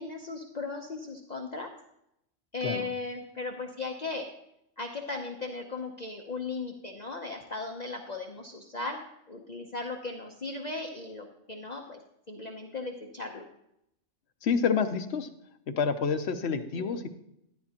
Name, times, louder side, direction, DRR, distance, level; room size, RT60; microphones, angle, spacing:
voice 1, 0.0-1.7 2.5-4.3 4.8-9.0 9.3-12.0 12.3-13.4 16.5-17.0, left 3 dB, 40° left, 2 dB, 0.8 m, -37 dB
voice 2, 14.4-15.3 15.7-17.1, left 6 dB, 60° left, 8 dB, 1.0 m, -28 dB
11.5 x 10.5 x 2.9 m, 0.79 s
omnidirectional pair, 1.3 m